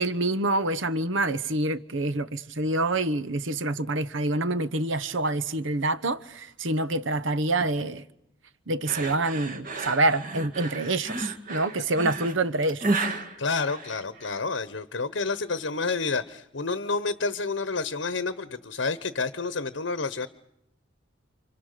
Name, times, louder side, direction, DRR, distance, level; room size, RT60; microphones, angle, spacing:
voice 1, 0.0-8.0 8.7-12.9, right 2 dB, 75° right, 1.1 m, -26 dB
sound 1, 8.9-14.4, right 3 dB, 45° right, 2.3 m, -32 dB
voice 2, 13.4-20.3, left 4 dB, 70° left, 1.0 m, -29 dB
29.0 x 28.5 x 6.7 m
head